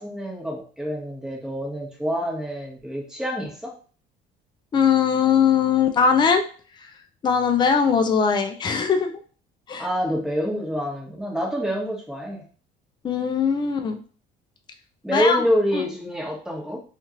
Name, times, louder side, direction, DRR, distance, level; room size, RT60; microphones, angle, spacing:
voice 1, 0.0-3.7 9.8-12.4 15.0-16.8, equal, 5° right, -2 dB, 1.0 m, -27 dB
voice 2, 4.7-6.4 6.7-6.9 7.2-9.2 9.7-9.9 13.0-14.0 15.1-15.4 15.7-15.8, left 6 dB, 25° left, 5 dB, 0.4 m, -20 dB
2.9 x 2.4 x 2.8 m, 0.41 s
cardioid pair, 110°, 17 cm